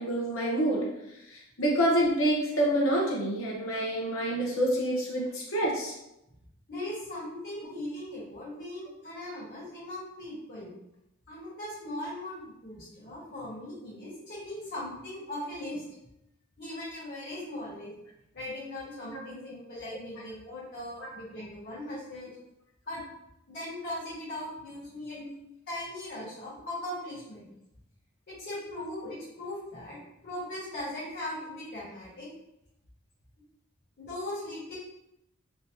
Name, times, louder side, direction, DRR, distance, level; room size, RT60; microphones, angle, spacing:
voice 1, 0.0-5.9 19.0-19.2 21.0-21.1 25.1-25.3, right 1 dB, 75° left, -3 dB, 0.9 m, -28 dB
voice 2, 6.7-10.7 11.3-15.8 16.6-17.9 18.3-22.3 22.9-23.0 23.5-25.2 25.7-27.5 28.3-30.0 30.2-32.3 34.0-34.7, left 1 dB, 50° left, -11 dB, 1.5 m, -39 dB
3.2 x 3.2 x 2.7 m, 0.85 s
head